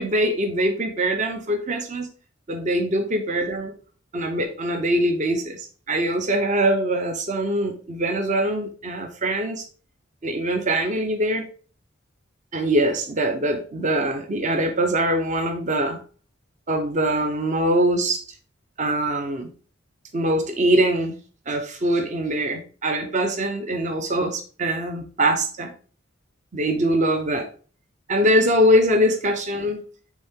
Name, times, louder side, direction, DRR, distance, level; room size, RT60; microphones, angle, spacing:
voice 1, 0.0-2.1 2.5-3.7 4.1-9.7 10.2-11.4 12.5-16.0 16.7-18.2 18.8-19.5 20.1-21.2 21.5-25.7 26.5-27.5 28.1-29.8, right 1 dB, 40° right, 5 dB, 0.7 m, -23 dB
8.4 x 3.6 x 3.6 m, 0.40 s
head